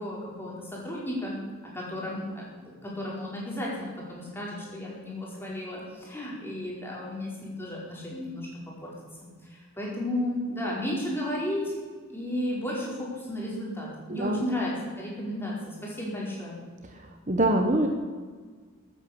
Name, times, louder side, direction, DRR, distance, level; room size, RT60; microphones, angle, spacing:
voice 1, 0.0-1.4 1.6-8.5 8.8-8.9 9.2-11.7 12.1-16.5, left 1 dB, 10° left, -5 dB, 4.6 m, -33 dB
voice 2, 14.1-14.4 16.9-17.9, right 1 dB, 35° right, 3 dB, 1.2 m, -25 dB
14.5 x 9.0 x 8.6 m, 1.5 s
head